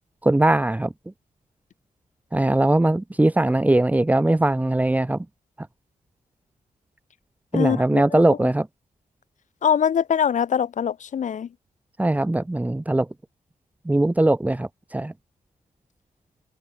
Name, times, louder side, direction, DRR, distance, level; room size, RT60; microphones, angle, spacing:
voice 1, 0.2-0.9 2.3-5.2 5.6-5.7 7.5-8.7 12.0-13.1 13.8-15.1, right 2 dB, 10° right, 1.6 m, -20 dB
voice 2, 7.5-8.2 9.6-11.5, left 8 dB, 60° left, 1.6 m, -23 dB
cardioid pair, 115°, 14 cm